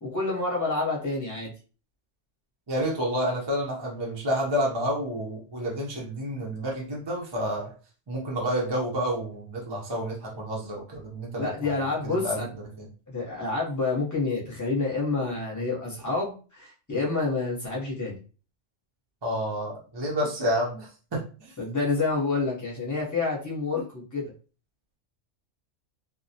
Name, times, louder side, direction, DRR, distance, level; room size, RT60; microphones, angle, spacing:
voice 1, 0.0-1.5 11.4-12.5 13.1-18.2 21.6-24.3, left 3 dB, 20° left, -4 dB, 0.7 m, -28 dB
voice 2, 2.7-7.7 8.1-12.4 12.8-12.9 19.2-21.5 23.7-23.8, equal, 35° right, -2 dB, 0.4 m, -29 dB
2.2 x 2.1 x 2.7 m, 0.37 s
omnidirectional pair, 1.3 m